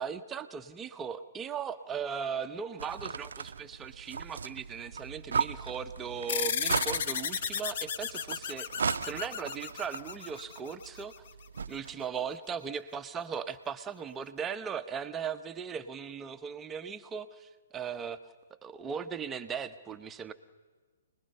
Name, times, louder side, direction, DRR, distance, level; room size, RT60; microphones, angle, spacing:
voice 1, 0.0-8.7 9.0-11.1 11.7-18.2 18.6-20.3, right 7 dB, 15° right, 9 dB, 1.0 m, -38 dB
sound 1, 2.8-12.0, right 5 dB, 75° right, 0.7 m, -37 dB
sound 2, 6.3-11.2, left 7 dB, 55° left, 1.0 m, -34 dB
29.0 x 20.5 x 5.6 m, 1.4 s
hypercardioid pair, 135°, 0 cm